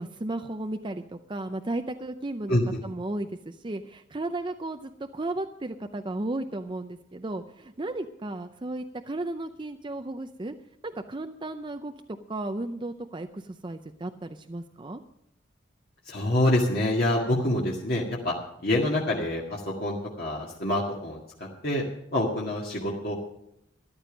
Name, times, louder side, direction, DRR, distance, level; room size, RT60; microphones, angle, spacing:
voice 1, 0.0-2.6 2.8-10.5 10.9-11.9 12.3-15.0, right 2 dB, 25° right, 6 dB, 0.5 m, -34 dB
voice 2, 2.5-2.8 16.1-18.3 18.6-21.8 22.1-23.1, left 1 dB, 50° left, -3 dB, 1.9 m, -26 dB
13.5 x 12.0 x 5.2 m, 0.78 s
head